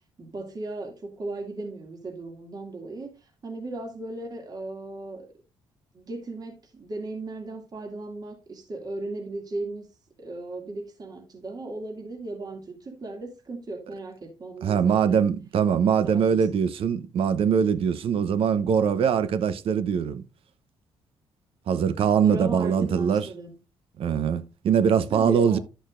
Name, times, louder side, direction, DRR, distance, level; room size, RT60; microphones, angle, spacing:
voice 1, 0.2-5.3 5.9-9.9 10.2-15.2 15.7-16.4 22.2-23.5 25.1-25.6, right 2 dB, 40° right, 2.4 m, -36 dB
voice 2, 14.6-20.2 21.7-23.3 24.0-25.6, right 7 dB, 65° right, 0.8 m, -22 dB
11.5 x 6.2 x 2.5 m
supercardioid pair, 70°, 10 cm